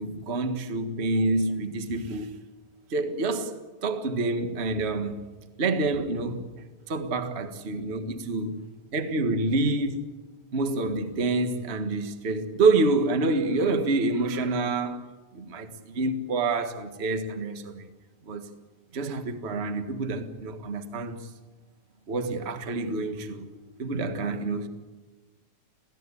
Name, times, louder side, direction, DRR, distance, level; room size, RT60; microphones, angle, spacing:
voice 1, 0.0-2.3 2.9-3.5 3.8-5.2 5.6-6.5 6.9-8.6 8.9-10.0 10.5-15.1 15.3-17.9 18.2-18.5 18.9-21.3 22.1-23.5 23.8-24.7, right 3 dB, 30° right, 1.3 m, -27 dB
27.5 x 17.0 x 8.4 m
omnidirectional pair, 3.4 m